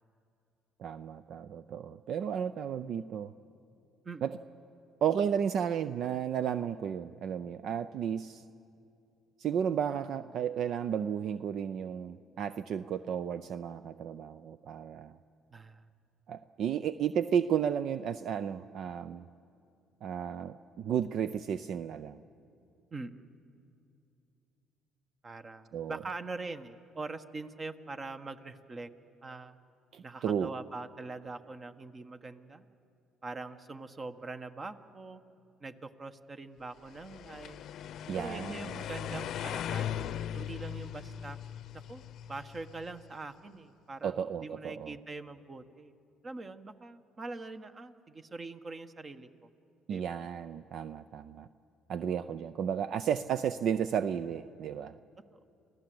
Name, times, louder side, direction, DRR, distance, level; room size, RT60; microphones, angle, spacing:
voice 1, 0.8-3.3 4.2-4.3 5.0-8.4 9.4-15.2 16.3-19.3 20.0-22.2 25.7-26.0 29.9-30.5 38.1-38.8 39.1-39.2 44.0-44.9 49.9-51.5 51.9-55.0, right 8 dB, 65° right, 13 dB, 0.5 m, -33 dB
voice 2, 15.5-15.9 22.9-23.3 25.2-28.9 29.2-29.6 30.0-32.6 33.2-35.2 35.6-37.6 38.2-40.0 40.3-41.4 41.7-42.0 42.3-45.9 46.2-49.5 49.9-50.0 55.3-55.4, right 3 dB, 35° right, 9 dB, 1.3 m, -43 dB
sound 1, 36.9-43.0, left 10 dB, 65° left, 0.7 m, -39 dB
27.5 x 16.5 x 7.9 m, 2.6 s
supercardioid pair, 65°, 0 cm